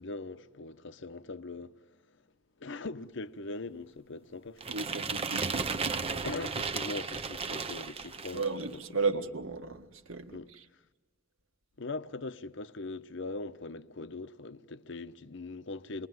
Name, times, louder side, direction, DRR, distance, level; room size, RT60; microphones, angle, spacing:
voice 1, 0.0-2.2 2.6-4.8 6.2-8.8 10.3-10.5 11.8-16.1, left 3 dB, 60° left, 0.9 m, -41 dB
Removal of waste, 4.6-8.6, right 4 dB, 30° right, 0.8 m, -34 dB
voice 2, 4.7-5.9 8.3-10.6, right 4 dB, 85° right, 1.7 m, -34 dB
28.5 x 22.0 x 9.4 m
head